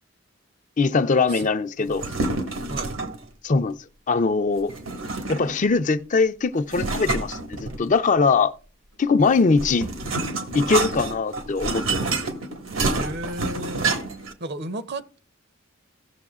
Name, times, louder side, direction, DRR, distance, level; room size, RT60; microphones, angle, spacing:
voice 1, 0.8-2.0 3.4-3.8 4.1-4.7 5.3-8.6 9.0-9.9 10.5-12.1, left 4 dB, 40° left, 0.5 m, -21 dB
sound 1, 1.9-3.2 4.7-5.7 6.7-8.1 9.2-14.3, right 3 dB, 85° right, 1.7 m, -28 dB
voice 2, 13.0-13.9 14.4-15.2, right 1 dB, 55° right, 0.8 m, -33 dB
17.0 x 6.8 x 2.4 m
head